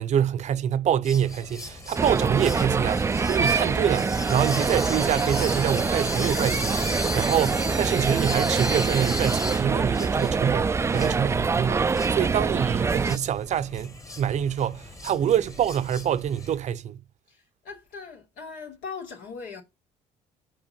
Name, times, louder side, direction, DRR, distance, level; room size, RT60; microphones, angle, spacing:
voice 1, 0.0-17.0, right 9 dB, 55° right, 0.7 m, -26 dB
sound 1, 1.0-16.6, left 2 dB, 20° left, 1.5 m, -36 dB
sound 2, 1.9-13.2, right 4 dB, 20° right, 0.3 m, -25 dB
voice 2, 17.3-19.6, left 5 dB, 80° left, 3.1 m, -40 dB
6.0 x 5.0 x 6.8 m
supercardioid pair, 80°, 15 cm